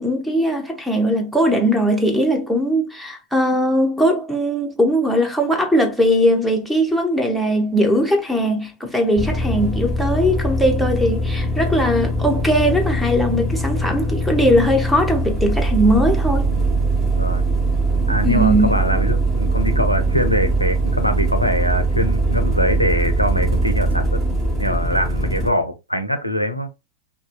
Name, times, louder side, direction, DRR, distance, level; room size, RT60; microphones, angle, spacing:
voice 1, 0.0-16.5 18.2-18.8, equal, ahead, 0.6 m, -19 dB
sound 1, 9.2-25.5, right 2 dB, 25° right, 1.2 m, -21 dB
voice 2, 16.8-17.5 18.1-24.2 24.6-26.7, equal, 90° left, 0.4 m, -23 dB
2.5 x 2.1 x 2.2 m
figure-of-eight pair, 90°, 0 cm